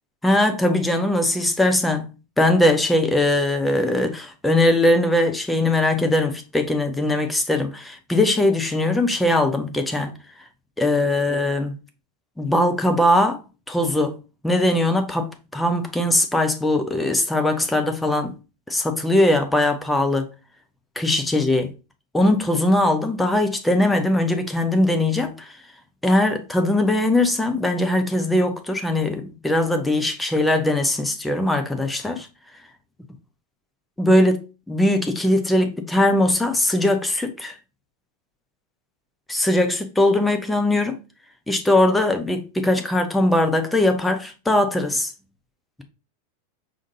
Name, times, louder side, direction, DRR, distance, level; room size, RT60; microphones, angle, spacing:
voice 1, 0.2-2.1 2.4-10.1 10.8-11.7 12.4-13.4 13.7-14.2 14.4-18.3 18.7-20.3 21.0-21.7 22.1-25.5 26.0-32.3 34.0-37.5 39.3-41.0 41.5-45.1, left 1 dB, 5° left, 0.8 m, -20 dB
4.9 x 3.7 x 2.7 m
figure-of-eight pair, 90°, 0 cm